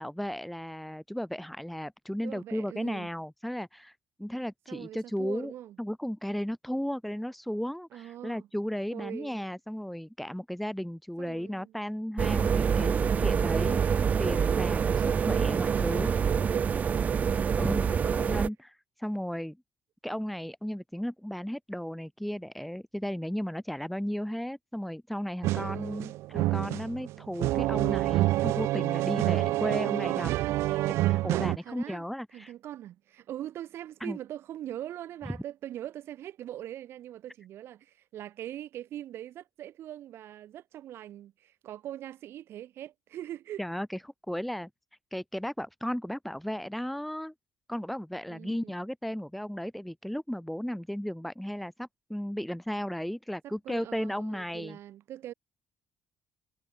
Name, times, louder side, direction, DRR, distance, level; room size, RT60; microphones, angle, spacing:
voice 1, 0.0-3.9 4.2-5.5 5.8-13.9 14.2-16.1 17.6-18.7 19.0-19.6 20.0-30.3 30.7-32.5 34.0-34.2 35.3-35.4 43.6-44.0 44.3-44.7 45.1-47.3 47.7-54.8, equal, ahead, 1.7 m, -35 dB
voice 2, 2.2-3.1 4.7-5.8 7.9-8.5 8.9-9.4 11.2-11.7 13.0-14.1 14.9-18.4 25.6-26.1 29.4-30.4 31.6-32.1 32.3-43.6 48.3-48.7 53.4-55.3, right 12 dB, 65° right, 8.0 m, -42 dB
sound 1, 12.2-18.5, right 7 dB, 35° right, 0.4 m, -26 dB
sound 2, 25.4-31.6, right 17 dB, 80° right, 0.7 m, -27 dB
cardioid pair, 110°, 4 cm